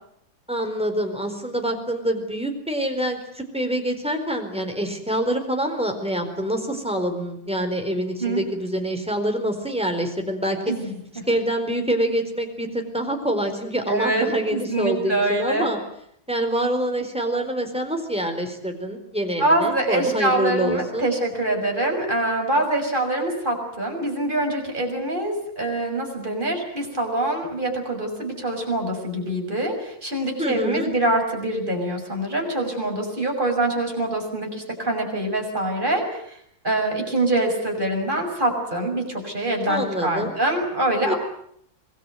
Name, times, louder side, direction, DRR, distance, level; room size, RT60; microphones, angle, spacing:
voice 1, 0.5-10.6 11.3-15.8 16.3-21.1 30.4-30.9 39.6-40.3 41.0-41.1, right 1 dB, 5° right, 4 dB, 4.4 m, -26 dB
voice 2, 10.7-11.2 13.9-15.7 19.4-36.4 36.6-41.2, right 1 dB, 25° right, 2 dB, 6.6 m, -24 dB
26.0 x 20.0 x 9.3 m, 0.70 s
omnidirectional pair, 2.0 m